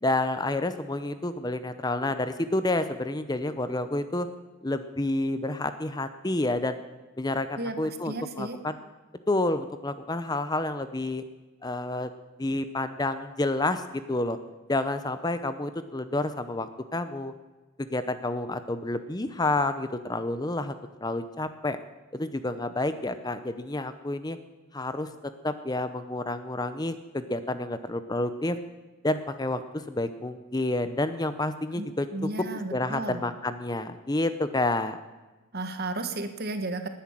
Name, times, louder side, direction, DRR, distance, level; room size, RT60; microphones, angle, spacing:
voice 1, 0.0-4.3 4.6-6.8 7.2-8.8 9.3-11.2 11.6-12.1 12.4-14.4 14.7-17.3 17.8-20.7 21.0-21.8 22.1-24.4 24.7-25.1 25.4-28.6 29.0-32.1 32.7-35.0, left 2 dB, 20° left, 11 dB, 0.7 m, -29 dB
voice 2, 8.0-8.6 31.8-33.2 35.5-36.9, right 2 dB, 50° right, 8 dB, 1.6 m, -33 dB
19.0 x 10.0 x 7.5 m, 1.2 s
head